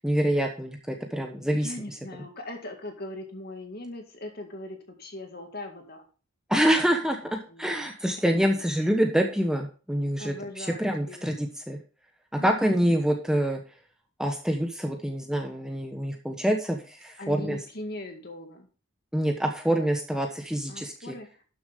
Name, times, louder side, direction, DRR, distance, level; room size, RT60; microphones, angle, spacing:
voice 1, 0.0-1.7 6.5-11.8 12.3-13.6 14.2-17.6 19.1-21.1, equal, 5° right, 3 dB, 1.0 m, -26 dB
voice 2, 1.2-6.0 7.0-8.2 8.5-8.6 10.2-11.4 12.4-12.9 17.2-18.7 20.7-21.4, left 1 dB, 45° left, 4 dB, 2.1 m, -41 dB
12.0 x 7.0 x 3.6 m, 0.37 s
head